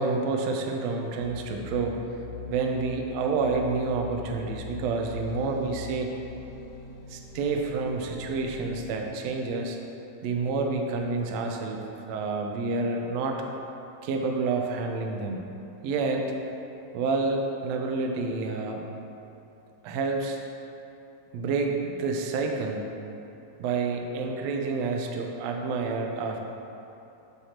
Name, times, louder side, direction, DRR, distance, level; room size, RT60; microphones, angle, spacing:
voice 1, 0.0-2.0 2.5-6.1 7.1-9.8 10.2-13.4 14.0-15.5 15.8-16.2 16.9-18.8 19.8-20.4 21.3-22.9 23.6-26.4, right 4 dB, 90° right, 2 dB, 1.5 m, -29 dB
sound 1, 1.2-9.1, left 3 dB, 75° left, 2.2 m, -42 dB
8.0 x 2.9 x 5.7 m, 2.9 s
omnidirectional pair, 3.7 m